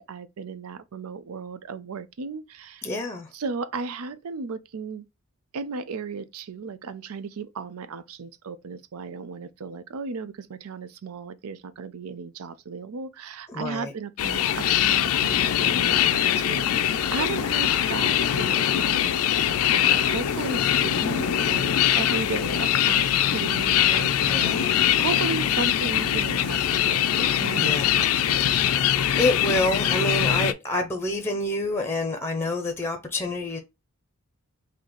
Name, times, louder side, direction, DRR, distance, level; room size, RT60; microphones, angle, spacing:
voice 1, 0.0-2.9 3.3-5.0 5.5-19.2 19.7-28.5, right 5 dB, 90° right, 0.5 m, -35 dB
voice 2, 2.8-3.3 13.5-13.9 24.3-24.6 27.5-27.9 29.0-33.6, left 1 dB, 10° left, 0.6 m, -27 dB
sound 1, 14.2-30.5, left 10 dB, 90° left, 0.4 m, -22 dB
3.9 x 2.8 x 3.0 m
head